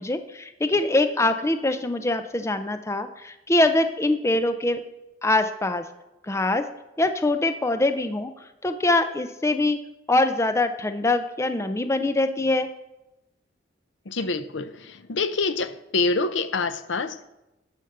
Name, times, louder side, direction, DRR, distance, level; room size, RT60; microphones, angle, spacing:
voice 1, 0.0-4.8 5.2-5.8 6.3-6.6 7.0-8.3 8.6-9.8 10.1-12.7, left 2 dB, 15° left, 9 dB, 0.5 m, -23 dB
voice 2, 14.1-17.2, left 3 dB, 75° left, 12 dB, 0.7 m, -26 dB
12.0 x 5.2 x 6.6 m, 0.95 s
head